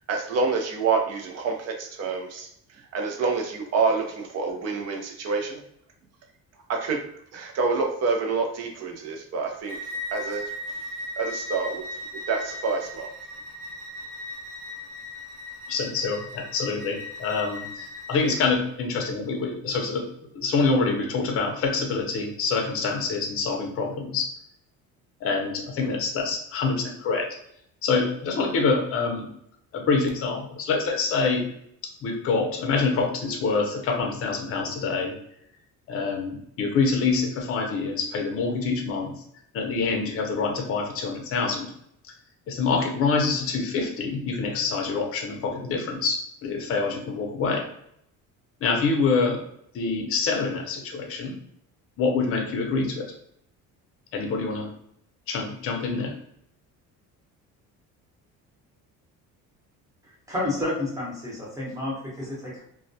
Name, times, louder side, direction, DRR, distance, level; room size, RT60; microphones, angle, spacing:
voice 1, 0.1-2.5 2.9-5.6 6.7-7.0 7.3-9.8 10.1-10.5 11.2-11.8 12.3-13.1, right 4 dB, 50° right, 2 dB, 0.6 m, -27 dB
Bowed string instrument, 9.6-18.4, left 1 dB, 75° right, 1.2 m, -37 dB
voice 2, 15.7-20.0 20.3-24.3 25.2-27.3 27.8-29.3 29.7-31.5 32.0-35.2 35.9-39.2 39.5-41.7 42.0-42.1 42.5-47.7 48.6-49.4 49.7-51.4 52.0-53.1 54.1-54.7 55.3-56.2, left 4 dB, 40° left, 2 dB, 0.6 m, -26 dB
voice 3, 60.0-62.6, left 2 dB, 10° right, -5 dB, 0.9 m, -30 dB
2.2 x 2.1 x 2.6 m, 0.70 s
cardioid pair, 145°, 34 cm